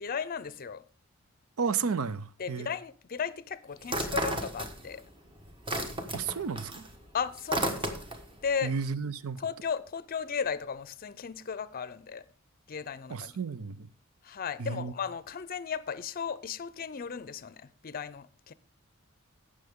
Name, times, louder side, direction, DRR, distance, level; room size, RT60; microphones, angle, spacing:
voice 1, 0.0-0.8 2.4-5.0 7.1-8.0 8.4-8.7 9.4-12.2 12.7-13.3 14.2-18.5, left 6 dB, 45° left, 0.5 m, -35 dB
voice 2, 1.6-2.7 6.1-6.7 8.6-9.4 13.1-13.9 14.6-14.9, right 5 dB, 85° right, 0.6 m, -32 dB
sound 1, 3.8-5.1 5.4-8.3, right 1 dB, 25° right, 1.3 m, -33 dB
17.0 x 6.5 x 3.7 m
head